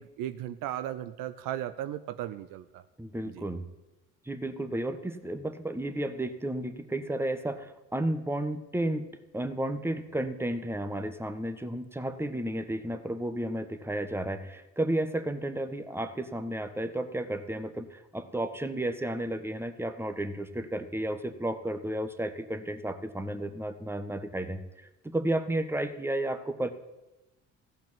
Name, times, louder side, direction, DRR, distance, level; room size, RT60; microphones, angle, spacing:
voice 1, 0.0-2.8 3.3-3.4, right 12 dB, 65° right, 12 dB, 0.7 m, -36 dB
voice 2, 3.0-3.7 4.2-9.1 9.3-26.7, right 1 dB, 5° right, 9 dB, 1.4 m, -32 dB
15.5 x 5.8 x 8.8 m, 0.99 s
hypercardioid pair, 60°, 36 cm